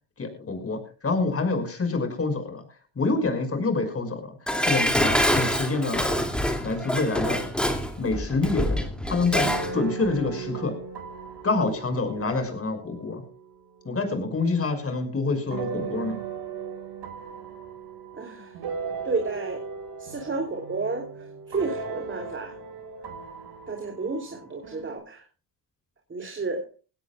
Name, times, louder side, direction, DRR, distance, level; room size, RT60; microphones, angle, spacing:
voice 1, 0.2-2.6 3.0-4.3 4.6-6.1 6.6-7.4 8.0-10.8 11.4-13.2 13.8-16.2, left 3 dB, 30° left, 6 dB, 5.7 m, -27 dB
Dishes pots and pans, 4.5-9.7 10.1-10.2, equal, ahead, 2.5 m, -26 dB
sound 1, 6.8-7.8 8.1-14.4 15.5-25.0, right 5 dB, 60° right, 5.8 m, -38 dB
voice 2, 18.2-18.6 19.0-19.6 20.0-22.5 23.7-25.2 26.1-26.6, right 3 dB, 25° right, 2 dB, 3.2 m, -31 dB
20.5 x 17.0 x 2.4 m, 0.36 s
supercardioid pair, 90°, 47 cm